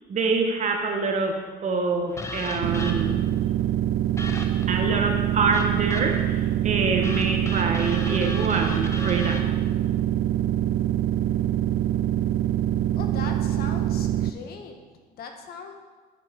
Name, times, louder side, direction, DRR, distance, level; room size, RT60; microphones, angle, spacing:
voice 1, 0.1-3.2 4.7-9.4, right 3 dB, 45° right, 3 dB, 1.7 m, -26 dB
sound 1, 2.2-3.3 4.2-4.8 5.5-6.3 7.0-9.4, left 2 dB, 15° left, 1.3 m, -35 dB
sound 2, 2.6-14.3, right 12 dB, 75° right, 0.5 m, -24 dB
voice 2, 12.9-14.8 15.2-15.7, left 5 dB, 65° left, 5 dB, 1.5 m, -39 dB
10.0 x 7.9 x 6.0 m, 1.4 s
cardioid pair, 110°, 17 cm